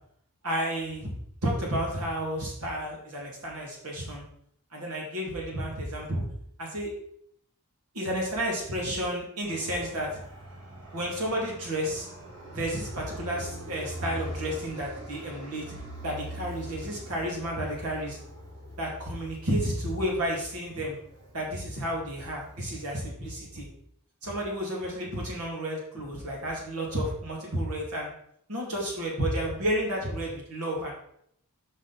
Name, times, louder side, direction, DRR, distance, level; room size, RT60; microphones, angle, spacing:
voice 1, 0.4-1.1 1.4-4.2 4.7-6.2 6.6-6.9 7.9-10.2 10.9-12.1 12.5-15.6 16.0-18.2 18.8-21.0 21.3-23.7 24.2-28.1 28.5-30.9, equal, 90° right, -3 dB, 2.5 m, -31 dB
Fixed-wing aircraft airplane, 9.4-22.9, equal, 55° right, 2.2 m, -43 dB
6.2 x 5.2 x 4.1 m, 0.69 s
head